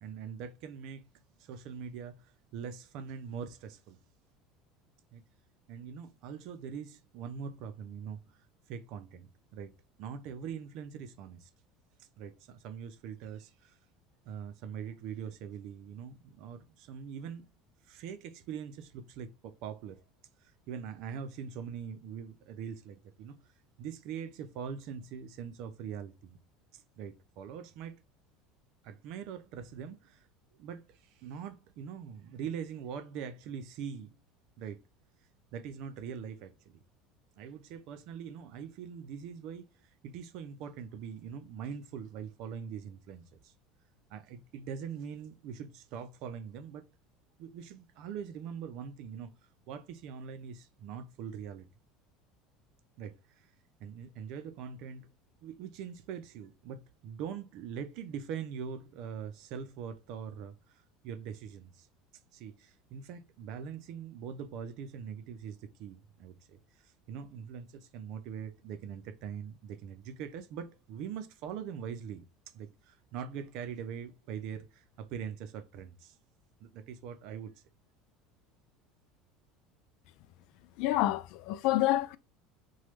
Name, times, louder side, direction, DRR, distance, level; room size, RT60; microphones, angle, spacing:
voice 1, 0.0-1.0 1.4-4.0 5.1-5.2 5.7-8.2 8.7-9.7 10.0-11.5 12.0-13.8 14.2-17.4 17.9-20.0 20.4-23.4 23.8-26.4 26.7-28.0 28.8-30.3 30.6-34.2 34.6-34.8 35.5-36.8 37.4-43.5 44.1-46.9 47.4-49.3 49.7-51.7 53.0-53.5 53.8-55.1 55.4-61.9 62.3-72.2 72.5-76.2 76.6-77.5, right 7 dB, 65° right, 0.5 m, -42 dB
voice 2, 80.8-82.2, left 15 dB, 65° left, 0.3 m, -28 dB
3.0 x 2.3 x 2.9 m
supercardioid pair, 105°, 0 cm